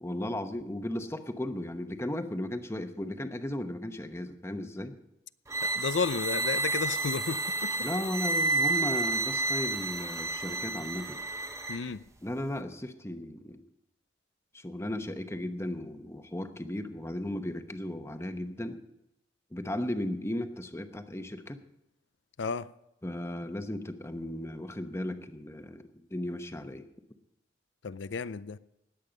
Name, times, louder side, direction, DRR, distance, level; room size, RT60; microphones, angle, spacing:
voice 1, 0.0-4.9 7.8-11.2 12.2-13.6 14.5-18.8 19.5-21.6 23.0-26.9, left 1 dB, 15° left, 1.0 m, -36 dB
sound 1, 5.5-11.8, right 3 dB, 15° right, 0.9 m, -30 dB
voice 2, 5.6-7.7 11.7-12.0 22.4-22.7 27.8-28.6, left 5 dB, 70° left, 0.5 m, -32 dB
19.5 x 8.5 x 5.2 m
head